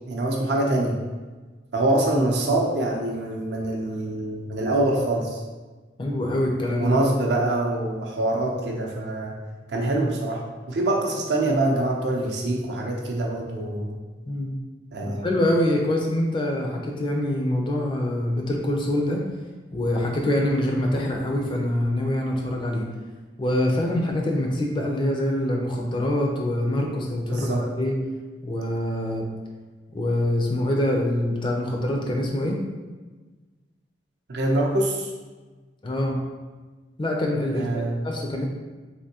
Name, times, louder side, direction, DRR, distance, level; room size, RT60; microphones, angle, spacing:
voice 1, 0.1-1.0 1.7-5.4 6.8-9.3 9.7-14.0 14.9-15.3 27.3-27.7 34.3-35.1 37.5-38.0, right 2 dB, 60° right, 0 dB, 0.5 m, -24 dB
voice 2, 6.0-7.0 14.3-14.6 15.0-19.2 19.7-22.8 23.4-27.5 27.8-28.0 28.4-29.3 29.9-32.6 35.8-36.2 37.0-38.5, left 1 dB, 25° left, 0 dB, 0.4 m, -25 dB
3.4 x 2.6 x 2.8 m, 1.3 s
head